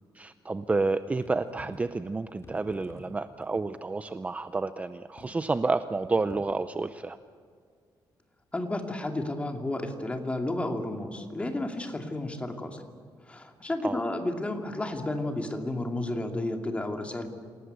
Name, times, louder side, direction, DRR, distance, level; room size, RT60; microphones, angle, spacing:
voice 1, 0.1-7.2 13.8-14.0, right 3 dB, 15° right, 11 dB, 0.6 m, -30 dB
sound 1, 0.9-1.0 1.2-1.9 2.4-3.7 4.2-4.3 5.2-5.5 6.3-6.7, left 1 dB, 35° left, 3.9 m, -48 dB
voice 2, 8.5-12.8 13.3-17.3, left 1 dB, 15° left, 4 dB, 2.5 m, -32 dB
27.5 x 18.5 x 8.2 m, 2.1 s
cardioid pair, 140°, 8 cm